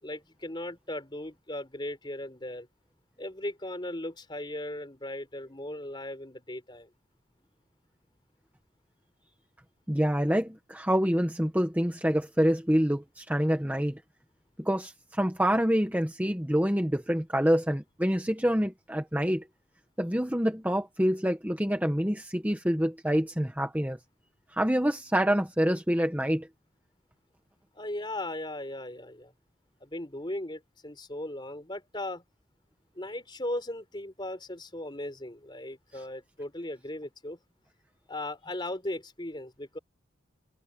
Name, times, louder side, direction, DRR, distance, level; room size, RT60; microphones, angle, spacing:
voice 1, 0.0-2.7 3.2-6.9 27.7-29.3 29.8-32.2 32.9-37.4 38.1-39.8, left 1 dB, 25° left, 4.2 m, -37 dB
voice 2, 9.9-14.0 14.6-19.4 20.0-24.0 24.5-26.5, equal, 10° right, 1.4 m, -26 dB
head